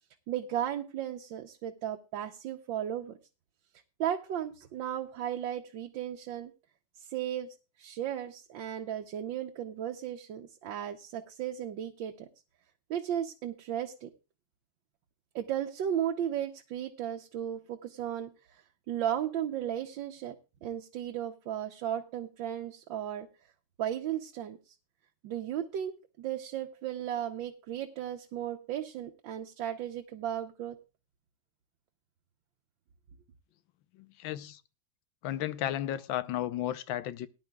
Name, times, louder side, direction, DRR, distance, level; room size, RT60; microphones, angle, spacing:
voice 1, 0.3-3.2 4.0-6.5 7.0-12.3 12.9-14.1 15.3-18.6 18.9-20.4 20.6-23.3 23.8-24.6 25.2-30.8, right 10 dB, 80° right, 1.5 m, -35 dB
voice 2, 33.9-34.6 35.2-37.3, left 12 dB, 90° left, 1.5 m, -34 dB
18.5 x 10.5 x 2.3 m
omnidirectional pair, 2.1 m